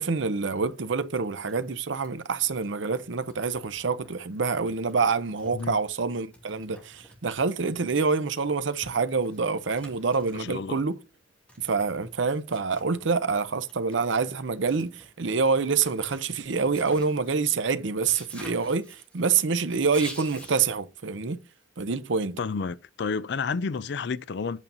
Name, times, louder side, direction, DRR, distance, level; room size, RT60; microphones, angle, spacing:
voice 1, 0.0-11.0 11.6-21.4 21.8-22.4, right 5 dB, 75° right, 0.7 m, -26 dB
sound 1, 1.5-1.6 1.9-2.1 2.4-2.7 3.0-4.1 4.5-6.1 6.3-10.7 11.5-13.1 13.5-20.7, equal, 5° left, 2.7 m, -49 dB
voice 2, 10.4-10.8 22.4-24.6, left 5 dB, 60° left, 0.4 m, -30 dB
8.3 x 7.1 x 2.6 m
head